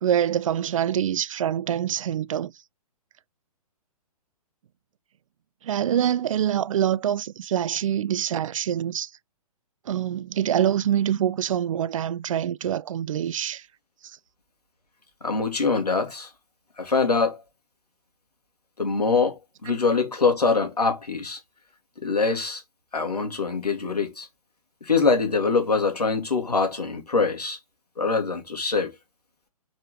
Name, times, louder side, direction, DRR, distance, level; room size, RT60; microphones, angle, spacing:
voice 1, 0.0-2.5 5.6-9.1 9.9-13.6, right 10 dB, 60° right, 0.4 m, -25 dB
voice 2, 15.2-16.3 16.8-17.4 18.8-21.4 22.0-22.6 22.9-24.3 24.8-27.6 28.0-28.9, left 4 dB, 85° left, 2.9 m, -24 dB
6.3 x 4.6 x 3.8 m
figure-of-eight pair, 125°, 20 cm